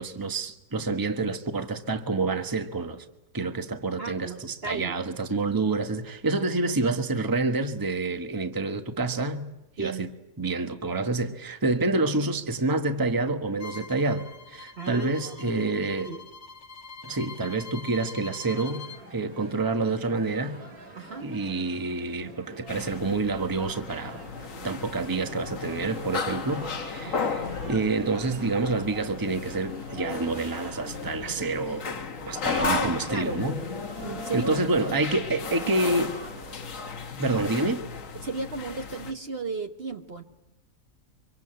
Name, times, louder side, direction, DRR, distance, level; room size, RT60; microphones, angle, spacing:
voice 1, 0.0-3.0 3.3-9.5 9.8-10.1 10.4-16.1 17.0-20.6 21.2-24.2 24.6-31.9 32.3-33.5 34.3-36.1 37.2-37.8, right 3 dB, 15° right, 1.2 m, -28 dB
voice 2, 4.0-5.0 9.8-10.1 14.8-16.2 21.0-21.3 27.1-27.3 32.5-33.4 34.0-34.6 35.1-35.2 35.7-35.8 37.4-37.5 38.2-40.2, right 3 dB, 45° right, 1.4 m, -34 dB
Bowed string instrument, 13.6-19.0, left 4 dB, 85° left, 2.1 m, -44 dB
sound 1, 18.4-36.7, right 1 dB, 75° right, 4.1 m, -46 dB
sound 2, 22.7-39.1, left 5 dB, 60° left, 1.7 m, -35 dB
25.0 x 24.0 x 7.8 m
omnidirectional pair, 1.6 m